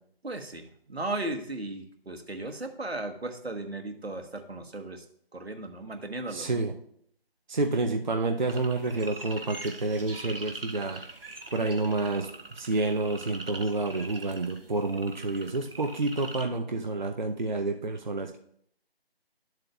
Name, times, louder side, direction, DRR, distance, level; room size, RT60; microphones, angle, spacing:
voice 1, 0.2-5.0 5.3-6.6, right 2 dB, 80° right, 5 dB, 1.4 m, -36 dB
voice 2, 6.3-6.7 7.5-11.0 11.5-12.3 12.5-18.4, right 2 dB, 50° right, 4 dB, 0.6 m, -29 dB
sound 1, 8.5-16.4, right 2 dB, 65° right, 1.1 m, -43 dB
12.0 x 7.5 x 2.4 m, 0.67 s
figure-of-eight pair, 160°, 31 cm